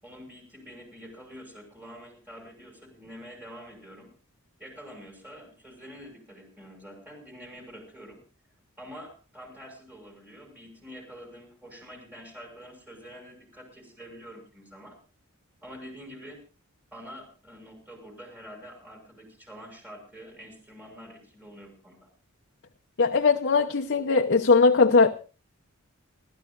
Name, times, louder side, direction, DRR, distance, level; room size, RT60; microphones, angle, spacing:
voice 1, 0.0-4.1 4.6-8.2 8.8-15.0 15.6-16.4 16.9-22.1, equal, 10° right, 6.5 m, -46 dB
voice 2, 23.0-25.1, left 4 dB, 55° left, 0.8 m, -20 dB
27.5 x 13.5 x 2.5 m
head